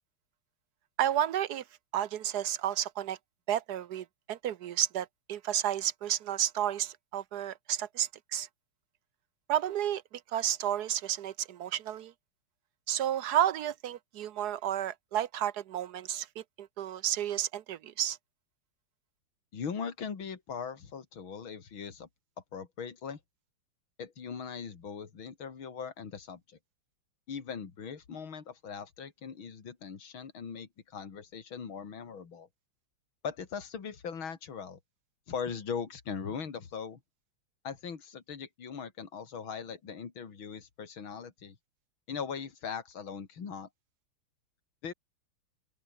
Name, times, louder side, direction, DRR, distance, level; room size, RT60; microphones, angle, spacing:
voice 1, 1.0-1.6 1.9-3.2 3.5-8.5 9.5-12.1 12.9-18.2, right 11 dB, 65° right, 1.0 m, -31 dB
voice 2, 19.5-22.1 22.5-23.2 24.0-26.6 27.3-32.5 33.2-34.8 35.3-37.0 37.6-41.6 42.1-43.7 44.8-44.9, left 6 dB, 65° left, 3.4 m, -40 dB
omnidirectional pair, 2.3 m